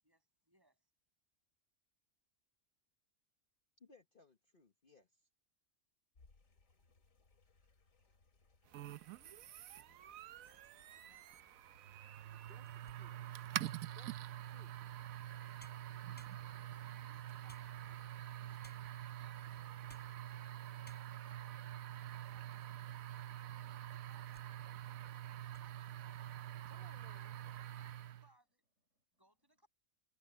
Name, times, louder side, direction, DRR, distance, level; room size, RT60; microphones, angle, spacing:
voice 1, 0.0-0.9 10.4-11.5 12.3-12.4 15.4-18.0 18.3-19.7 20.3-21.6 22.2-24.4 24.9-27.0 27.5-28.7 29.2-29.7, right 1 dB, 15° right, 8.1 m, -73 dB
voice 2, 3.8-5.2 12.5-13.2 14.0-14.7 26.7-27.4, left 4 dB, 40° left, 1.4 m, -64 dB
sound 1, 6.1-20.5, left 3 dB, 75° left, 3.0 m, -72 dB
sound 2, 8.7-28.3, right 12 dB, 85° right, 1.1 m, -46 dB
sound 3, 10.3-11.0 11.6-11.7 12.3-14.0 15.2-15.3 15.6-16.8 17.5-18.2 18.6-19.1 19.7-20.2 20.5-20.6 20.8-21.4 22.0-22.8 23.1-23.2 23.9-24.5 24.9-25.1 25.4-25.7, equal, 5° left, 7.9 m, -66 dB
voice 3, 11.8-12.4 12.9-14.0 27.7-28.1 28.9-29.0, equal, 55° right, 6.3 m, -77 dB
omnidirectional pair, 1.4 m